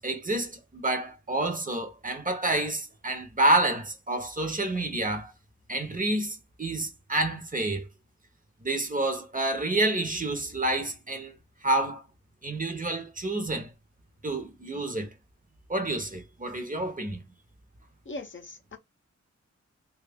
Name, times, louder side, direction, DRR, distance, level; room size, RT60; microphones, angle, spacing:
voice 1, 0.0-5.3 5.7-7.8 8.6-11.3 11.6-12.0 12.4-13.7 14.2-15.1 15.7-17.2, right 2 dB, 30° right, 0.8 m, -28 dB
voice 2, 18.1-18.8, left 2 dB, 40° left, 0.6 m, -40 dB
3.2 x 2.4 x 3.4 m
wide cardioid pair, 105°, 29 cm